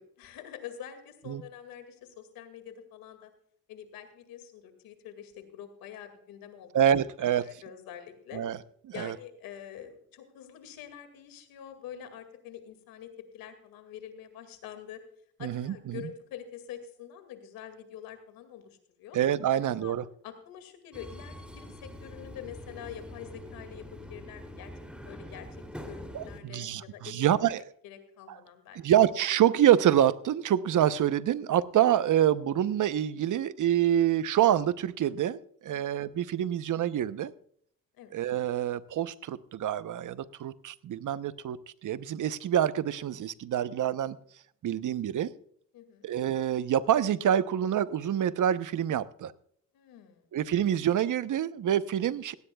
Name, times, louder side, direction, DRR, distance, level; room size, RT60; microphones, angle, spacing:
voice 1, 0.0-3.3 3.7-6.8 7.4-8.4 8.9-15.0 15.4-19.2 19.5-19.9 20.2-24.7 25.0-27.2 27.4-27.5 27.8-28.8 35.7-36.0 38.0-38.1 45.7-46.0 49.7-50.3, left 10 dB, 85° left, 9 dB, 2.2 m, -46 dB
voice 2, 6.7-7.6 8.3-8.6 9.0-9.1 15.4-16.0 19.1-20.0 26.1-27.6 28.7-37.3 38.1-41.6 41.8-44.2 44.6-45.3 46.0-49.3 50.3-52.3, right 10 dB, 60° right, 15 dB, 0.8 m, -26 dB
Subway metro underground, 20.9-26.4, equal, 5° right, 3.0 m, -44 dB
16.5 x 16.5 x 2.3 m, 0.65 s
supercardioid pair, 60°, 34 cm